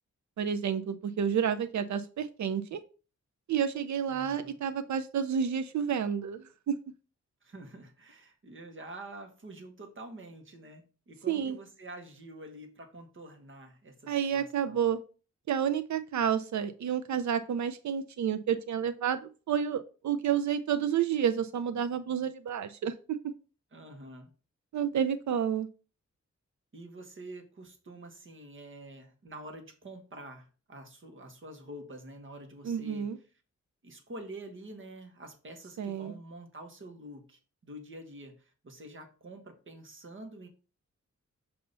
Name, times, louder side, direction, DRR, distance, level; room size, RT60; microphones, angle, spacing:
voice 1, 0.4-2.8 3.5-6.8 11.3-11.6 14.1-15.0 15.5-19.2 19.5-23.2 24.7-25.7 32.6-33.2 35.8-36.1, right 8 dB, 75° right, 9 dB, 0.5 m, -30 dB
voice 2, 4.1-4.6 7.4-14.9 23.7-24.3 26.7-33.1 33.8-40.5, right 1 dB, 45° right, 3 dB, 1.3 m, -47 dB
6.6 x 2.8 x 5.3 m, 0.35 s
wide cardioid pair, 160°, 29 cm